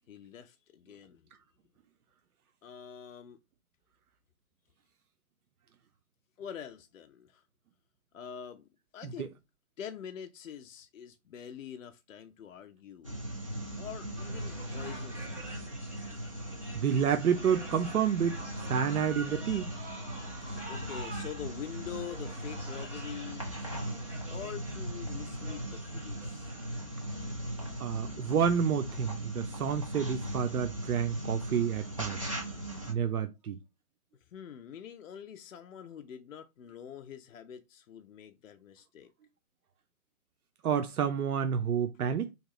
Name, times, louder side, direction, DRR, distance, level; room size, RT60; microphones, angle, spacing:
voice 1, 0.1-1.3 2.6-3.4 6.4-7.4 8.1-9.3 9.8-13.2 13.8-15.7 20.7-23.5 24.3-26.6 34.3-39.1, left 9 dB, 60° left, 0.5 m, -45 dB
sound 1, 13.0-32.9, right 1 dB, 25° right, 0.4 m, -39 dB
sound 2, 14.1-27.5, right 1 dB, 5° right, 1.0 m, -47 dB
voice 2, 16.7-18.4 18.7-19.7 27.8-32.2 32.9-33.6 40.6-42.3, right 7 dB, 75° right, 0.6 m, -29 dB
3.5 x 2.8 x 3.0 m
hypercardioid pair, 160°, 45 cm